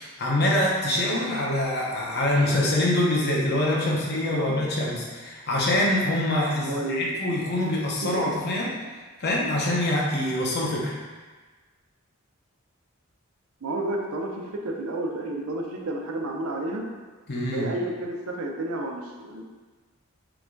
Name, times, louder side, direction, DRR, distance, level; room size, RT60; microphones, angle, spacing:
voice 1, 0.0-8.7 9.2-10.9 17.3-17.7, left 1 dB, 50° left, -4 dB, 0.8 m, -25 dB
voice 2, 4.2-4.6 6.7-7.2 8.1-8.4 13.6-16.9 17.5-19.5, right 1 dB, 85° right, 1 dB, 0.6 m, -31 dB
4.7 x 2.3 x 3.8 m, 1.4 s
head